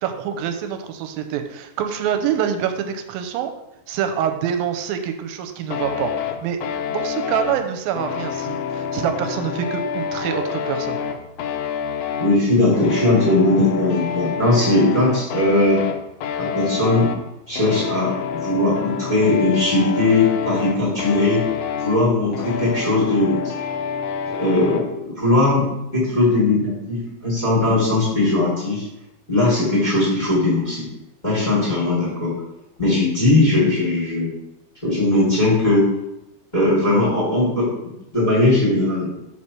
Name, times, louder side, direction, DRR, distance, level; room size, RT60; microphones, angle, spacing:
voice 1, 0.0-3.5 3.9-6.1 6.4-6.6 6.9-11.0, right 9 dB, 85° right, 7 dB, 2.4 m, -25 dB
sound 1, 5.7-24.9, left 7 dB, 90° left, 1.7 m, -28 dB
voice 2, 12.2-15.8 16.4-17.1 17.5-21.4 21.8-23.4 24.4-28.8 29.3-30.8 31.2-32.3 32.8-34.3 34.8-35.9 36.5-37.7 38.1-39.1, left 2 dB, 15° left, -6 dB, 2.0 m, -19 dB
4.8 x 4.3 x 5.9 m, 0.87 s
omnidirectional pair, 4.1 m